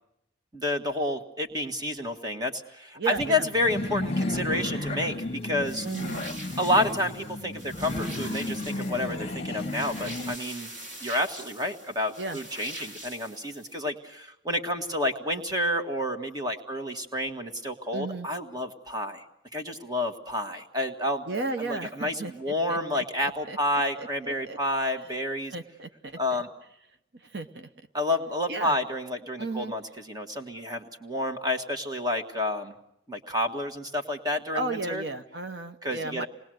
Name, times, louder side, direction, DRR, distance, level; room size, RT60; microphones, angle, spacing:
voice 1, 0.5-5.9 6.6-10.7 11.0-19.2 19.5-21.2 21.7-25.5 26.2-26.5 27.9-32.7 33.1-35.0 35.8-36.3, left 1 dB, 20° right, 5 dB, 1.8 m, -30 dB
voice 2, 3.0-3.5 5.8-6.3 12.2-12.4 17.9-18.3 21.3-22.3 22.7-24.6 25.5-26.4 27.2-27.7 28.5-28.7 29.4-29.7 34.5-36.3, right 3 dB, 65° right, 8 dB, 1.0 m, -34 dB
sound 1, 3.2-10.4, left 2 dB, 35° left, 1.4 m, -33 dB
sound 2, 5.6-13.8, right 1 dB, 85° right, 3.6 m, -44 dB
27.5 x 20.0 x 7.8 m, 0.79 s
head